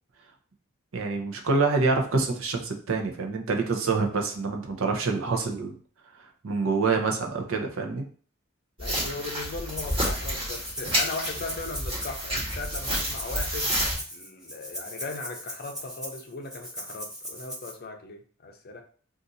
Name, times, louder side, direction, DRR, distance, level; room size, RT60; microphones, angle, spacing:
voice 1, 0.9-5.7 6.4-8.1, right 4 dB, 75° right, 3 dB, 0.6 m, -26 dB
voice 2, 8.8-13.8 14.1-18.8, left 3 dB, 50° left, 4 dB, 0.5 m, -38 dB
sound 1, 8.8-14.0, equal, 25° right, 1.2 m, -30 dB
Rattle (instrument), 9.7-10.2 10.5-17.7, equal, 5° right, 0.5 m, -39 dB
2.6 x 2.4 x 4.0 m, 0.43 s
head